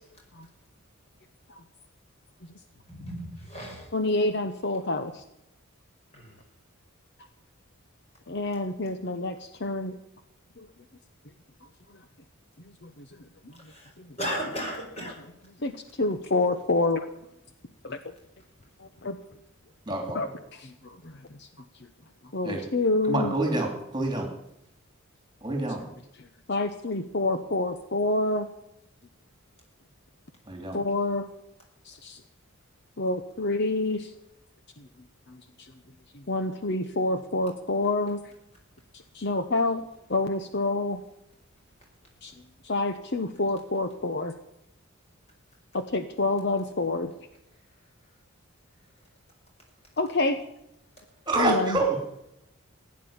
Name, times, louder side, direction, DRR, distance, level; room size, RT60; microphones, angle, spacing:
voice 1, 2.9-3.9 6.1-6.4 13.6-13.9 14.2-15.2, equal, 30° left, 0 dB, 5.3 m, -35 dB
voice 2, 3.9-5.2 8.3-9.9 10.6-10.7 12.8-13.0 13.4-13.5 15.6-17.1 17.8-18.0 18.8-19.2 20.1-21.1 21.4-21.5 22.3-23.3 26.2-28.5 30.7-31.2 31.8-32.2 33.0-34.1 34.8-34.9 35.3-35.7 36.3-38.2 39.1-39.8 40.1-41.0 42.2-42.3 42.6-44.3 45.7-47.1 50.0-50.4 51.4-51.8, left 2 dB, 50° left, 9 dB, 0.9 m, -28 dB
voice 3, 19.9-20.3 22.4-22.6 23.1-24.3 25.4-25.8 30.5-30.8 51.3-52.0, right 2 dB, 20° right, 4 dB, 2.9 m, -27 dB
16.0 x 9.7 x 8.7 m, 0.82 s
head